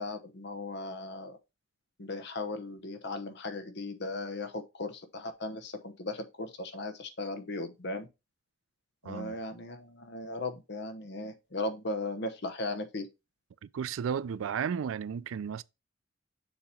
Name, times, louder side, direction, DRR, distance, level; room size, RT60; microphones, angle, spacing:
voice 1, 0.0-1.4 2.0-8.1 9.0-13.1, left 2 dB, 60° left, 0.9 m, -37 dB
voice 2, 9.0-9.4 13.6-15.6, right 7 dB, 80° right, 0.4 m, -34 dB
7.0 x 2.9 x 5.2 m
head